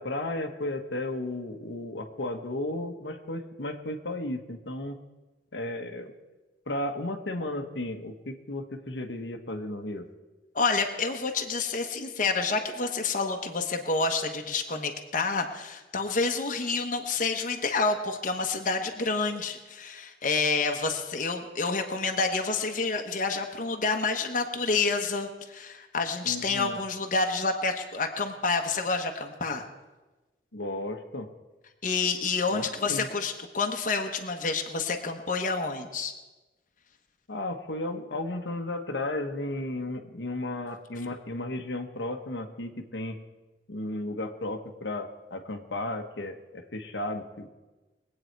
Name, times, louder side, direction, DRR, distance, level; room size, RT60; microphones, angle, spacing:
voice 1, 0.0-5.0 5.5-6.1 6.7-10.1 26.2-26.8 30.5-31.3 32.5-33.1 37.3-43.2 43.7-47.5, left 1 dB, 90° left, 4 dB, 1.2 m, -34 dB
voice 2, 10.5-29.6 31.8-36.1, left 4 dB, 45° left, 4 dB, 1.1 m, -28 dB
21.5 x 8.7 x 4.6 m, 1.1 s
head